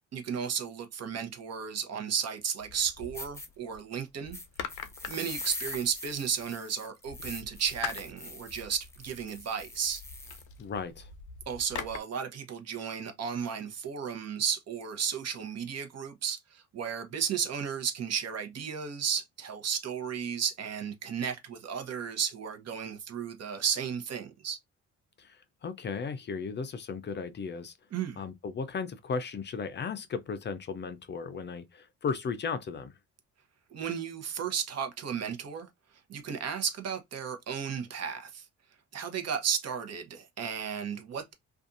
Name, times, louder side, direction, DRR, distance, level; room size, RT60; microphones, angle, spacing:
voice 1, 0.1-4.4 5.0-10.0 11.5-24.6 27.9-28.2 33.7-35.7 36.1-38.4 38.9-41.3, right 7 dB, 55° right, 0.8 m, -34 dB
sound 1, 2.6-3.8 4.2-6.4 7.0-12.0, left 8 dB, 85° left, 0.6 m, -44 dB
sound 2, 2.7-2.8 3.1-3.5 4.3-10.5, left 2 dB, 10° left, 0.8 m, -43 dB
voice 2, 10.6-11.1 25.2-27.7 28.2-33.0, left 5 dB, 35° left, 0.5 m, -36 dB
2.5 x 2.3 x 2.5 m
cardioid pair, 90°, 30 cm